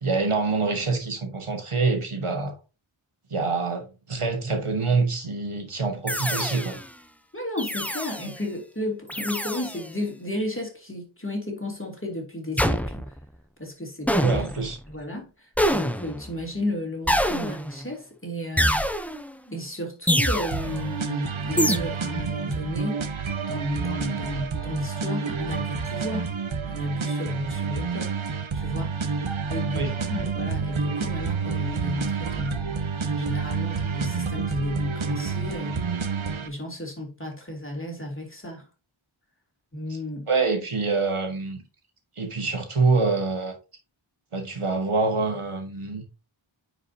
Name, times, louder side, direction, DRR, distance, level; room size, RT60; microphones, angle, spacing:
voice 1, 0.0-2.5 3.3-6.8 14.2-14.8 29.7-29.9 40.3-41.6 42.2-43.5 44.3-46.1, right 4 dB, 90° right, 1.7 m, -25 dB
sound 1, 6.1-6.9 7.6-8.4 9.1-9.9 12.6-13.2 14.1-14.7 15.6-16.3 17.1-17.9 18.6-19.3 20.1-20.8 21.6-21.8, equal, 5° left, 0.6 m, -25 dB
voice 2, 7.3-13.1 13.6-14.4 14.9-18.9 19.5-23.0 23.5-26.3 26.6-28.1 28.5-29.0 29.5-32.8 33.0-35.8 36.4-38.7 39.7-40.3, left 1 dB, 25° left, 2.7 m, -33 dB
sound 2, 20.5-36.5, right 5 dB, 70° right, 1.0 m, -29 dB
9.7 x 5.0 x 2.8 m
wide cardioid pair, 40°, 49 cm